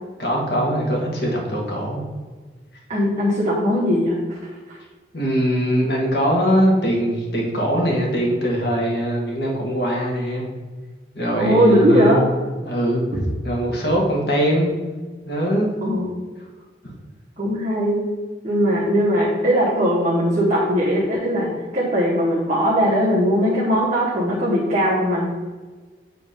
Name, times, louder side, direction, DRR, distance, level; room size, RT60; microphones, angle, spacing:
voice 1, 0.2-2.0 5.1-10.5 11.1-12.2 12.6-13.0 13.4-14.7 15.3-15.7, equal, 60° left, -1 dB, 1.5 m, -21 dB
voice 2, 2.9-4.4 11.4-12.2 15.8-16.2 17.4-18.1 18.4-25.3, equal, 35° right, -7 dB, 1.1 m, -19 dB
8.2 x 3.1 x 5.0 m, 1.4 s
head